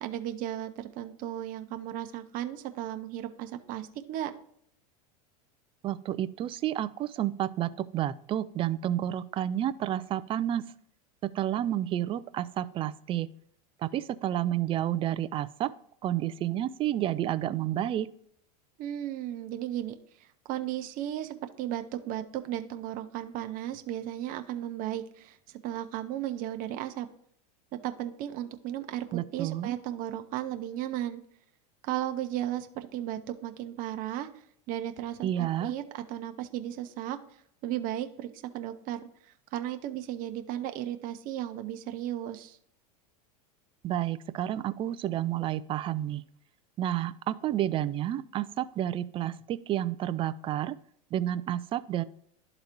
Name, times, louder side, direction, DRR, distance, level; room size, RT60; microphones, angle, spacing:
voice 1, 0.0-4.3 18.8-19.9 20.2-27.1 27.8-31.2 31.8-34.3 34.7-37.2 37.6-38.3 38.5-42.6, right 12 dB, 45° right, 7 dB, 0.7 m, -35 dB
voice 2, 5.8-10.7 11.2-13.3 13.8-15.7 16.0-18.1 29.1-29.8 35.2-35.7 43.8-46.2 46.8-50.8 51.1-52.0, right 12 dB, 25° right, 14 dB, 0.3 m, -30 dB
11.5 x 3.9 x 2.9 m, 0.67 s
supercardioid pair, 120°, 20 cm